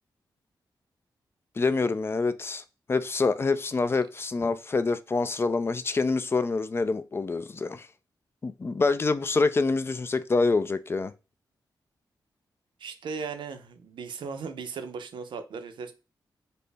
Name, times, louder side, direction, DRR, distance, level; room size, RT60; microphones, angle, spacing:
voice 1, 1.6-2.6 2.9-7.9 8.4-11.1, left 3 dB, 30° left, 0.3 m, -26 dB
voice 2, 12.8-15.9, right 5 dB, 85° right, 0.6 m, -37 dB
4.1 x 2.1 x 3.3 m
wide cardioid pair, 95°, 8 cm